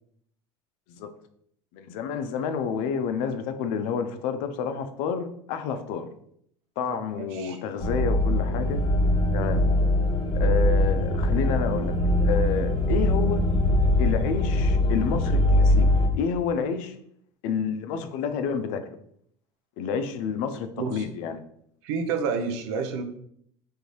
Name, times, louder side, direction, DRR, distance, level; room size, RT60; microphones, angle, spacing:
voice 1, 1.7-6.1 6.8-8.8 9.3-9.6 10.3-12.0 12.2-13.5 14.0-15.9 16.1-17.0 17.4-18.9 19.8-21.4, left 6 dB, 65° left, 8 dB, 0.5 m, -29 dB
voice 2, 6.9-7.6 20.8-21.0 21.8-23.0, right 5 dB, 70° right, 6 dB, 0.6 m, -30 dB
sound 1, 7.8-16.1, left 1 dB, 30° left, 0.9 m, -22 dB
3.7 x 2.7 x 3.0 m, 0.68 s
hypercardioid pair, 80°, 15 cm